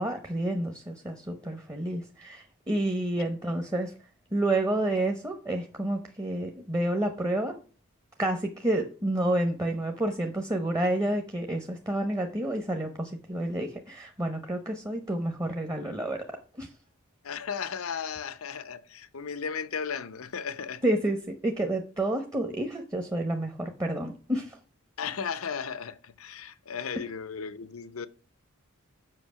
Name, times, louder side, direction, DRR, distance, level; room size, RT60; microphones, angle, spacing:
voice 1, 0.0-3.9 4.3-7.6 8.2-16.2 16.6-16.7 20.8-24.6, right 1 dB, 15° right, 0.9 m, -29 dB
voice 2, 17.2-20.8 25.0-28.1, left 6 dB, 85° left, 0.7 m, -35 dB
7.7 x 5.6 x 5.6 m
head